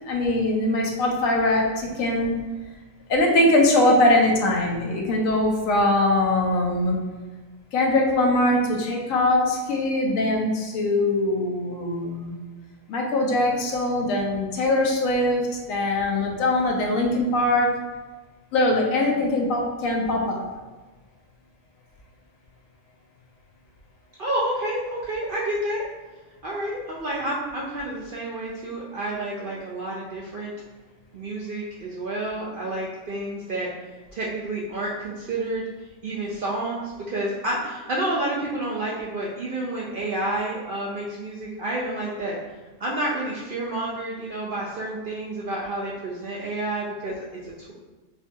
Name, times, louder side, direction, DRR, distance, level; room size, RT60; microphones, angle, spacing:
voice 1, 0.0-2.4 3.1-7.0 7.7-12.3 12.9-17.7 18.5-20.4, left 1 dB, 75° left, 0 dB, 1.0 m, -22 dB
voice 2, 24.2-25.8 26.4-30.5 31.1-33.7 34.1-35.6 36.0-42.4 42.8-47.7, right 1 dB, 70° right, -4 dB, 0.5 m, -29 dB
4.6 x 2.3 x 2.6 m, 1.3 s
omnidirectional pair, 1.4 m